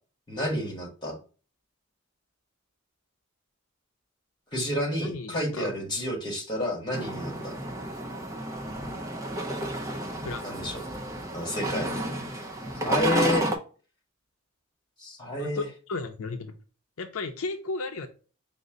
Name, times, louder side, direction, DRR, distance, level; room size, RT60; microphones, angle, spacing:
voice 1, 0.3-1.2 4.5-7.5 10.4-10.8 11.3-11.9 12.8-13.4 15.0-15.6, left 1 dB, 20° left, 1.5 m, -30 dB
voice 2, 5.0-5.7 7.3-7.5 10.2-10.5 15.4-16.5 17.0-18.1, left 3 dB, 80° left, 0.5 m, -35 dB
sound 1, 6.9-13.6, right 1 dB, 15° right, 0.6 m, -31 dB
5.3 x 2.1 x 3.7 m
head